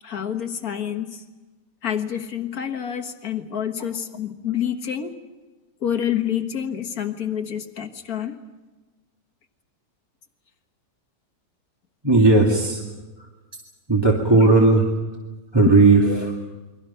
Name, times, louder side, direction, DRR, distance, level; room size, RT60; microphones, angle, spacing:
voice 1, 0.0-1.2 1.8-5.2 5.8-8.4 12.5-12.6 14.3-14.6 16.0-16.3, left 9 dB, 55° left, 5 dB, 1.9 m, -28 dB
voice 2, 12.0-12.8 13.2-13.3 13.9-14.8 15.5-16.3, right 3 dB, 15° right, -2 dB, 2.3 m, -16 dB
29.5 x 23.0 x 5.7 m, 1.2 s
omnidirectional pair, 1.9 m